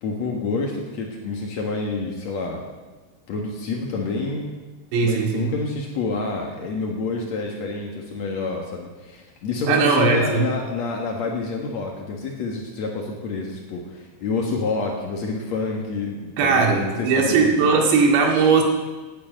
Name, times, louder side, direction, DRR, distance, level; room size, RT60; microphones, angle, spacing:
voice 1, 0.0-2.6 3.3-4.5 5.0-17.1 17.4-17.6, left 3 dB, 80° left, 0 dB, 1.5 m, -28 dB
voice 2, 4.9-5.5 9.7-10.5 16.4-18.6, right 5 dB, 65° right, 1 dB, 4.2 m, -19 dB
18.0 x 10.0 x 6.5 m, 1.3 s
omnidirectional pair, 5.8 m